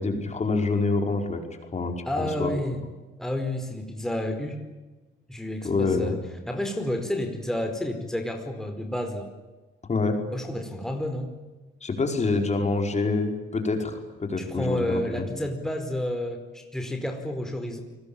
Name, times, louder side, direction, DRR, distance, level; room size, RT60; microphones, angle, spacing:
voice 1, 0.0-1.4 1.7-2.5 5.6-6.2 9.9-10.2 11.8-15.2, left 3 dB, 35° left, 4 dB, 5.3 m, -26 dB
voice 2, 2.0-2.8 3.2-4.6 5.3-6.2 6.5-9.3 10.3-11.3 14.4-17.8, left 1 dB, ahead, 4 dB, 4.8 m, -30 dB
29.0 x 20.5 x 9.0 m, 1.2 s
cardioid pair, 90°, 20 cm